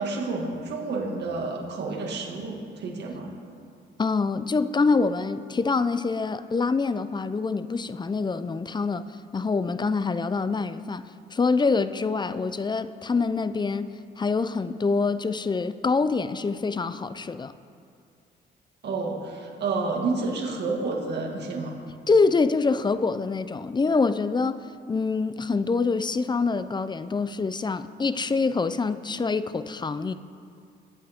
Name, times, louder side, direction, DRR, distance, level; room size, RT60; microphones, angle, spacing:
voice 1, 0.0-3.3 18.8-21.8, right 3 dB, 60° right, -1 dB, 2.0 m, -30 dB
voice 2, 4.0-9.1 9.3-11.0 11.3-17.5 22.1-30.1, left 4 dB, 20° left, 13 dB, 0.5 m, -25 dB
22.0 x 8.4 x 3.6 m, 2.3 s
cardioid pair, 90°, 20 cm